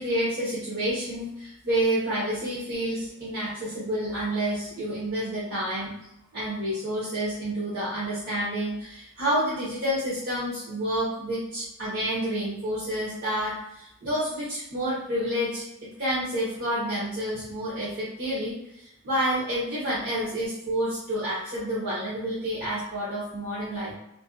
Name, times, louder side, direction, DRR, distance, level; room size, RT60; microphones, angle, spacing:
voice 1, 0.0-5.9 6.3-15.6 16.0-23.9, right 1 dB, 50° right, -10 dB, 0.8 m, -29 dB
2.5 x 2.1 x 2.4 m, 0.82 s
head